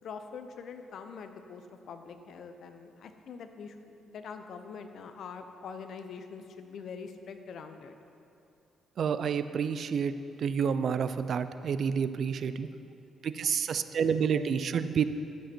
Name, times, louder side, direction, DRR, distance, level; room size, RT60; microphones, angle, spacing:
voice 1, 0.0-8.0, left 5 dB, 65° left, 7 dB, 0.7 m, -44 dB
voice 2, 9.0-12.7 13.2-15.0, right 7 dB, 60° right, 12 dB, 0.4 m, -29 dB
11.5 x 7.6 x 4.4 m, 2.6 s
cardioid pair, 90°, 0 cm